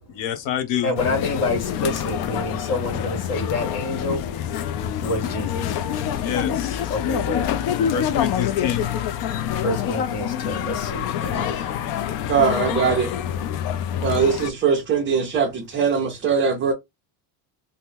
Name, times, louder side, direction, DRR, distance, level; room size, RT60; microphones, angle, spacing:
voice 1, 0.1-1.0 6.2-6.8 7.9-8.8 11.1-11.3, left 9 dB, 75° left, 0.9 m, -27 dB
voice 2, 0.8-4.2 5.0-5.6 6.9-7.4 9.6-11.1 12.4-12.7, left 2 dB, 35° left, 1.2 m, -27 dB
sound 1, 1.0-14.5, left 9 dB, 55° left, 0.5 m, -26 dB
voice 3, 11.2-11.9 12.3-13.1 14.0-16.7, right 6 dB, 25° right, 0.6 m, -22 dB
2.9 x 2.1 x 3.5 m
cardioid pair, 155°, 47 cm